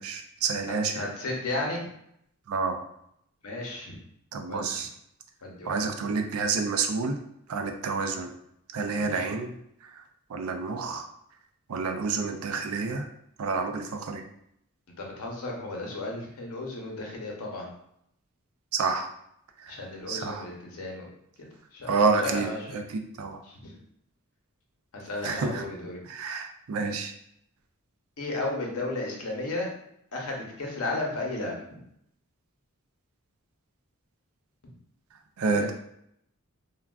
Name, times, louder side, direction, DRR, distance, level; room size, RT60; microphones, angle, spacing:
voice 1, 0.0-1.1 2.5-2.8 4.3-4.9 5.7-7.2 7.5-8.3 8.7-9.5 10.3-11.1 11.7-13.1 13.4-14.2 18.7-19.1 19.6-19.8 20.1-20.4 21.9-22.8 23.2-23.4 25.2-25.6 26.1-27.1 35.4-35.7, right 4 dB, 70° right, 6 dB, 0.4 m, -28 dB
voice 2, 0.9-1.8 3.4-4.0 4.5-4.8 5.4-5.8 9.0-9.3 15.0-17.7 19.7-21.1 21.4-21.9 22.2-22.8 23.4-23.8 24.9-26.0 28.2-29.7 30.1-31.8 35.5-35.7, left 2 dB, 90° left, -1 dB, 0.8 m, -34 dB
3.4 x 2.2 x 2.3 m, 0.74 s
head